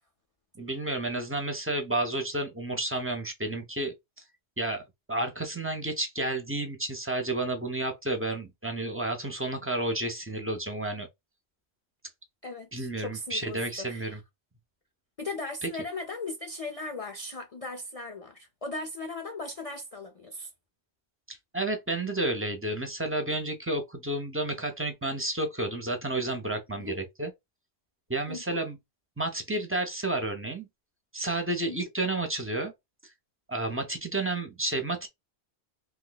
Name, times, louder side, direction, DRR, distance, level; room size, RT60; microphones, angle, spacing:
voice 1, 0.6-3.9 4.6-4.8 5.1-11.1 12.7-14.2 15.6-15.7 21.3-27.3 28.1-28.8 29.2-30.7 31.1-32.7 33.5-35.1, right 2 dB, 15° right, 0.5 m, -31 dB
voice 2, 12.4-14.2 15.2-20.5 26.7-27.0 28.3-28.6 31.6-31.8, left 2 dB, 45° left, 0.5 m, -38 dB
2.8 x 2.3 x 3.8 m
omnidirectional pair, 1.1 m